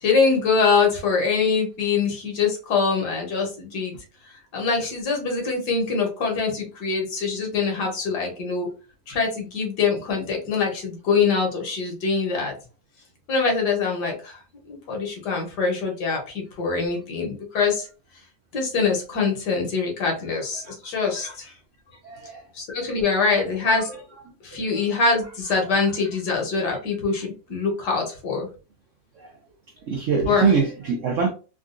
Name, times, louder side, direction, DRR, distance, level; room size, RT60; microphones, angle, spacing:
voice 1, 0.0-4.0 4.5-8.7 9.1-12.5 13.3-14.4 14.7-17.9 18.5-21.5 22.5-24.0 24.4-28.5 30.2-30.6, left 4 dB, 70° left, 1 dB, 1.6 m, -24 dB
voice 2, 29.9-31.3, right 5 dB, 75° right, 3 dB, 0.7 m, -22 dB
3.7 x 2.3 x 2.5 m, 0.34 s
omnidirectional pair, 2.0 m